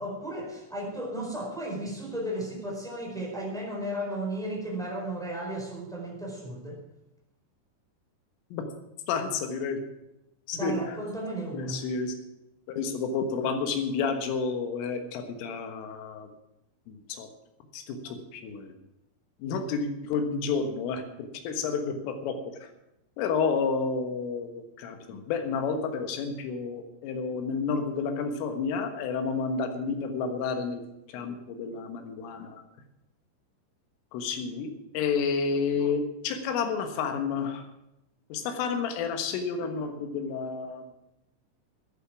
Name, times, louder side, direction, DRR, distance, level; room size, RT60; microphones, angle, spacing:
voice 1, 0.0-6.8 10.5-11.8, right 1 dB, ahead, -3 dB, 3.9 m, -34 dB
voice 2, 9.1-9.8 10.5-10.7 11.5-12.2 12.7-16.3 16.9-17.3 17.7-18.7 19.4-22.7 23.2-30.8 31.1-32.6 34.1-37.6 38.3-40.9, left 5 dB, 90° left, 6 dB, 4.0 m, -30 dB
14.5 x 10.5 x 6.1 m, 0.89 s
omnidirectional pair, 5.6 m